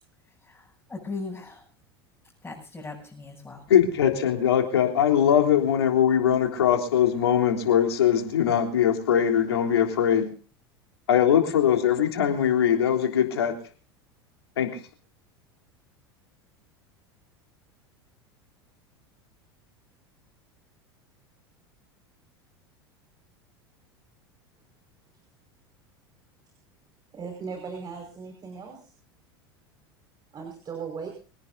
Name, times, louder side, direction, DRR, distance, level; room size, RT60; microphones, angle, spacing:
voice 1, 0.4-1.6 2.4-3.6, left 3 dB, 10° left, -5 dB, 7.9 m, -38 dB
voice 2, 3.7-10.3 11.1-13.5 14.6-14.7, left 9 dB, 75° left, 3 dB, 3.4 m, -21 dB
voice 3, 27.1-28.9 30.3-31.1, right 5 dB, 30° right, 2 dB, 5.2 m, -37 dB
25.5 x 18.0 x 2.7 m, 0.39 s
hypercardioid pair, 80°, 13 cm